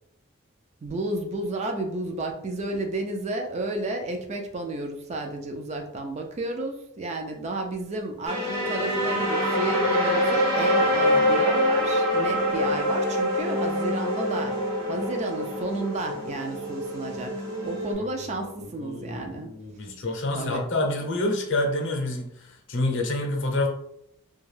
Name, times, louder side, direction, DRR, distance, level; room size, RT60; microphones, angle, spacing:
voice 1, 0.8-14.6 14.9-17.3 17.6-19.5 20.3-20.6, right 2 dB, 30° right, 4 dB, 0.4 m, -32 dB
sound 1, 8.3-17.9, equal, 85° right, 1.1 m, -25 dB
voice 2, 18.0-23.7, left 2 dB, 60° left, 2 dB, 0.6 m, -28 dB
2.5 x 2.3 x 3.2 m, 0.74 s
head